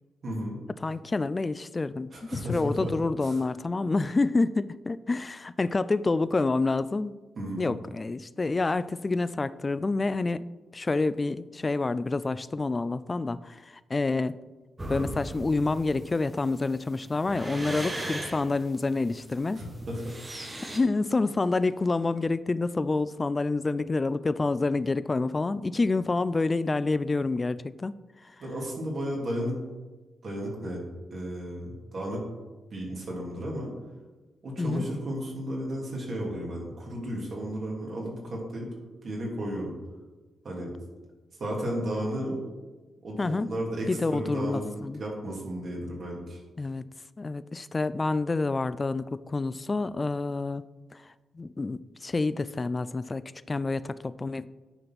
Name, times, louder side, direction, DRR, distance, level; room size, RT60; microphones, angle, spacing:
voice 1, 0.2-0.6 2.1-2.9 3.2-3.4 7.4-7.7 19.6-20.2 28.4-29.6 30.2-30.8 31.1-32.2 32.7-33.7 34.4-38.7 39.0-39.7 40.4-40.7 41.4-42.4 43.0-44.6 45.0-46.4, equal, 45° right, -2 dB, 2.4 m, -33 dB
voice 2, 0.8-7.1 7.6-14.4 14.9-19.6 20.7-27.9 28.2-28.4 34.6-34.9 43.2-43.5 43.9-45.0 46.6-46.9 47.2-50.6 50.9-54.5, left 3 dB, 25° left, 16 dB, 0.3 m, -28 dB
sound 1, 14.8-20.8, right 1 dB, 15° right, 1.3 m, -37 dB
9.6 x 4.2 x 5.9 m, 1.2 s
cardioid pair, 120°, 0 cm